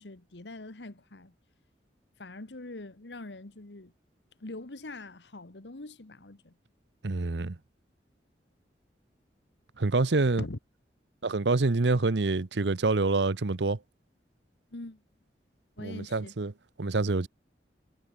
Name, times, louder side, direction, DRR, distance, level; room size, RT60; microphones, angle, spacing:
voice 1, 0.0-1.3 2.2-3.9 4.4-6.5 10.4-10.6 14.7-15.0 15.8-16.3, left 2 dB, 80° left, 1.5 m, -43 dB
voice 2, 7.0-7.6 9.8-10.4 11.2-13.8 15.8-16.5 16.8-17.3, right 3 dB, 80° right, 0.9 m, -26 dB
head